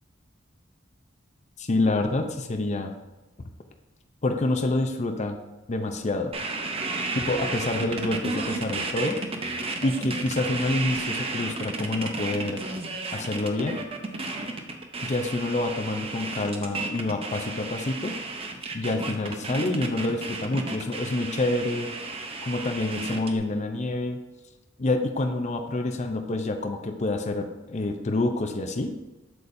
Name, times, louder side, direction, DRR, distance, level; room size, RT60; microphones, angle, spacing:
voice 1, 1.6-2.9 3.4-3.5 4.2-5.4 5.7-6.3 7.1-9.2 9.8-12.6 13.1-13.8 15.0-18.2 18.7-21.9 22.4-24.2 24.8-28.9, left 2 dB, 40° left, 5 dB, 0.6 m, -27 dB
sound 1, 6.3-23.4, right 3 dB, 30° right, 0.7 m, -33 dB
7.9 x 7.0 x 2.6 m, 1.1 s
head